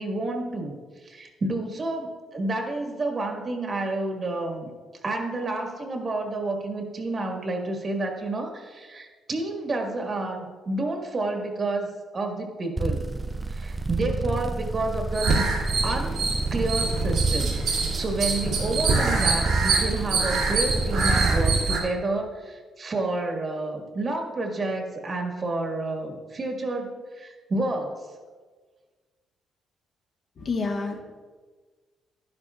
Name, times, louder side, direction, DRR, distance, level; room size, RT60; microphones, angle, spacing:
voice 1, 0.0-4.7 5.0-13.1 13.5-15.5 15.8-16.2 16.5-17.5 17.9-28.0, right 2 dB, 40° right, 2 dB, 1.6 m, -30 dB
sound 1, 12.8-21.7, right 3 dB, 15° right, 0.4 m, -29 dB
sound 2, 15.1-21.8, right 4 dB, 75° right, 2.1 m, -25 dB
voice 2, 30.4-31.0, left 4 dB, 50° left, 1 dB, 1.5 m, -28 dB
11.0 x 10.5 x 2.4 m, 1.4 s
cardioid pair, 90°, 0 cm